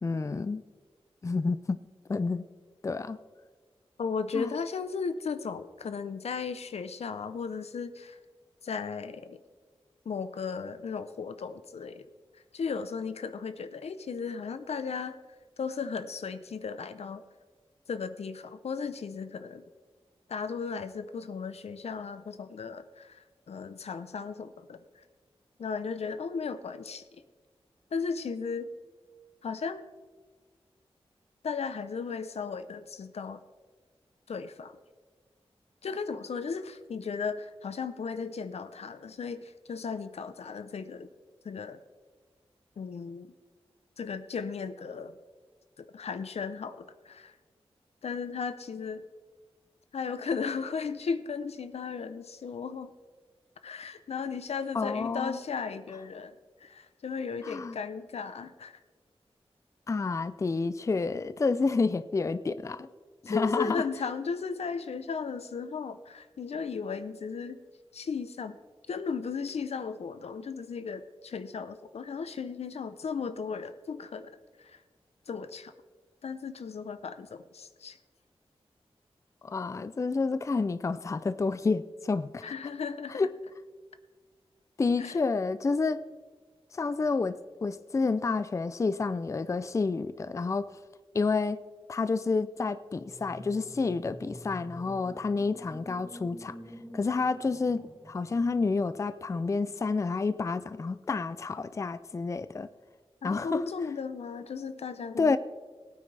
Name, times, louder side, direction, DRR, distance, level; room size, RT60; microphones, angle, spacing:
voice 1, 0.0-0.6 1.2-1.8 2.1-2.4 2.8-3.2 4.3-4.5 54.7-55.4 57.4-57.8 59.9-62.9 63.2-63.8 79.4-82.5 83.1-83.4 84.8-86.0 86.7-90.7 91.1-91.6 91.9-96.5 96.9-102.7 103.2-103.7 105.2-105.4, left 4 dB, 30° left, 0.4 m, -29 dB
voice 2, 4.0-8.2 8.6-9.4 10.1-12.1 12.5-15.2 15.6-17.2 17.9-19.6 20.3-24.8 25.6-27.0 27.9-28.7 29.4-29.8 31.4-33.4 34.3-34.8 35.8-41.1 41.4-41.8 42.8-43.3 44.0-45.1 45.8-47.3 48.0-49.0 49.9-52.9 53.6-56.3 56.6-58.8 63.3-67.6 67.9-68.6 68.9-74.8 75.3-75.7 76.2-78.0 82.4-83.2 85.0-85.2 103.2-105.3, left 5 dB, 85° left, 0.7 m, -35 dB
sound 1, 92.9-99.1, equal, ahead, 1.2 m, -48 dB
20.0 x 9.0 x 3.3 m
wide cardioid pair, 115°, 10 cm